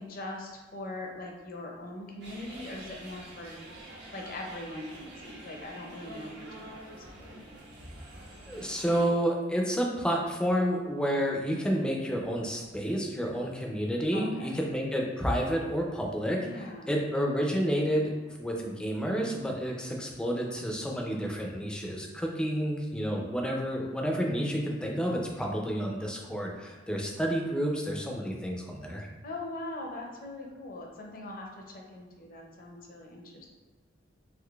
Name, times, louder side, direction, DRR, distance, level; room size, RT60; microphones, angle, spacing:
voice 1, 0.0-3.6 4.1-7.4 14.1-14.7 16.4-17.0 29.2-33.5, left 2 dB, 50° left, 0 dB, 0.6 m, -41 dB
sound 1, 2.2-9.1, right 1 dB, 60° right, 0.8 m, -47 dB
voice 2, 8.5-18.1 18.4-29.1, equal, 5° left, 0 dB, 0.4 m, -30 dB
3.6 x 3.0 x 2.3 m, 1.3 s
head